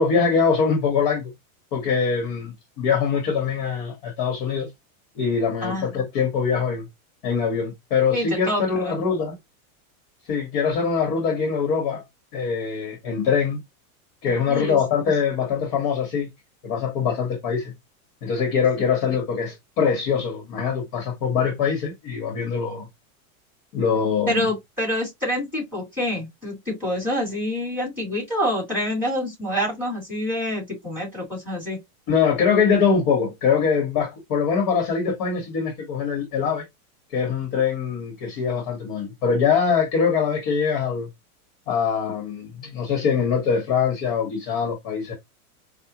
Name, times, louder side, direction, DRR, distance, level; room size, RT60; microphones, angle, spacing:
voice 1, 0.0-1.3 1.7-4.7 5.2-6.9 7.2-9.3 10.3-12.0 12.3-13.6 14.2-16.3 16.6-17.7 18.2-22.9 23.7-24.5 32.1-36.6 37.1-41.1 41.7-45.1, left 6 dB, 35° left, 1.0 m, -23 dB
voice 2, 8.1-8.9 14.3-14.8 24.3-31.8, equal, 5° right, 2.1 m, -27 dB
4.7 x 2.1 x 2.8 m
supercardioid pair, 175°, 43 cm